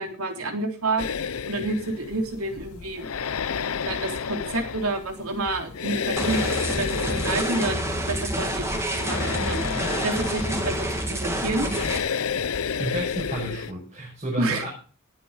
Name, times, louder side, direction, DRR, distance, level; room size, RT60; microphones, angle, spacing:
voice 1, 0.0-3.1 3.8-6.4 6.8-9.6 10.0-11.7 14.4-14.6, right 2 dB, 85° right, 4 dB, 3.5 m, -29 dB
sound 1, 1.0-13.7, left 6 dB, 80° left, 0.7 m, -31 dB
sound 2, 6.2-12.0, right 1 dB, 15° right, 2.5 m, -28 dB
voice 2, 12.5-14.7, right 1 dB, 30° right, -2 dB, 5.6 m, -31 dB
18.0 x 8.7 x 5.1 m, 0.39 s
head